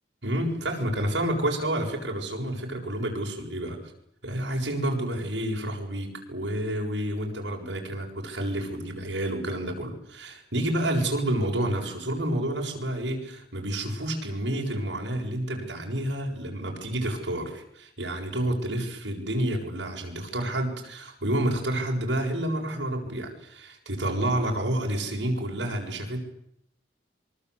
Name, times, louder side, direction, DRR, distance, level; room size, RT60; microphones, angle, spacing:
voice 1, 0.2-3.8 4.2-26.2, right 1 dB, 90° right, 1 dB, 7.5 m, -29 dB
26.0 x 25.0 x 8.4 m, 0.77 s
head